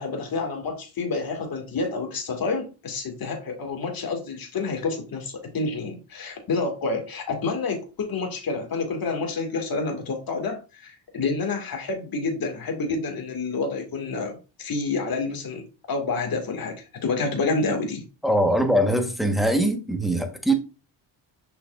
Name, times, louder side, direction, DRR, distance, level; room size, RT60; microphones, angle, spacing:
voice 1, 0.0-18.0, left 3 dB, 50° left, 2.2 m, -28 dB
voice 2, 18.2-20.5, right 1 dB, ahead, 1.3 m, -22 dB
6.6 x 5.7 x 2.5 m
cardioid pair, 90°, 45 cm